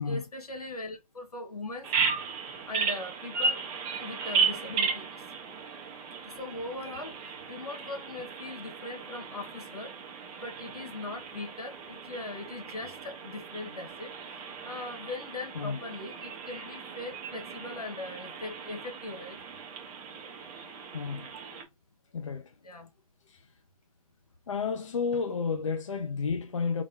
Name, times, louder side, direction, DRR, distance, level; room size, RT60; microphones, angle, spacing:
voice 1, 0.0-1.9 2.7-3.6 4.0-5.2 6.3-7.2 7.5-9.9 10.4-19.4 22.6-22.9, left 2 dB, 85° left, 1.6 m, -40 dB
Bird vocalization bird call bird song, 1.8-21.6, right 5 dB, 10° right, 0.5 m, -35 dB
voice 2, 20.9-21.3 22.1-22.5 23.3-23.5 24.5-26.8, left 5 dB, 55° left, 0.7 m, -31 dB
4.0 x 3.6 x 2.9 m
hypercardioid pair, 160°, 19 cm